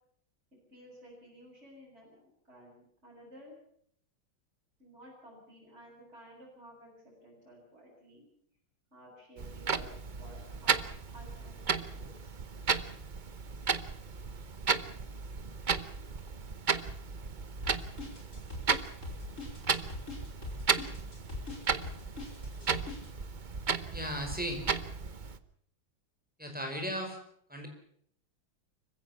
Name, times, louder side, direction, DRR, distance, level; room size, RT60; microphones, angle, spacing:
voice 1, 0.7-2.2 2.5-3.5 4.8-8.2 8.9-9.9 10.2-10.9 11.1-12.4 24.5-24.7, equal, 30° right, -7 dB, 8.0 m, -54 dB
Clock, 9.4-25.4, right 5 dB, 45° right, 0.6 m, -34 dB
sound 1, 17.6-23.1, left 2 dB, 35° left, 5.3 m, -42 dB
voice 2, 23.9-24.6 26.4-27.2 27.5-27.7, equal, 5° right, 3 dB, 4.9 m, -36 dB
25.5 x 16.0 x 7.2 m, 0.65 s
omnidirectional pair, 2.2 m